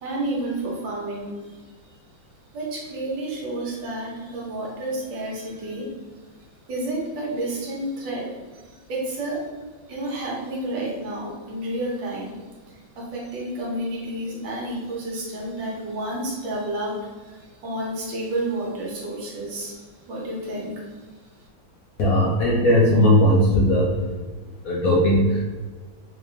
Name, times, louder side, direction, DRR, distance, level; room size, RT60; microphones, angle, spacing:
voice 1, 0.0-1.6 2.5-5.9 6.7-8.3 8.5-9.4 9.9-12.3 12.7-20.9, right 1 dB, 70° right, -3 dB, 1.7 m, -30 dB
voice 2, 22.0-24.0 24.6-25.4, equal, 65° left, -4 dB, 0.9 m, -18 dB
3.7 x 2.8 x 3.3 m, 1.4 s
omnidirectional pair, 2.1 m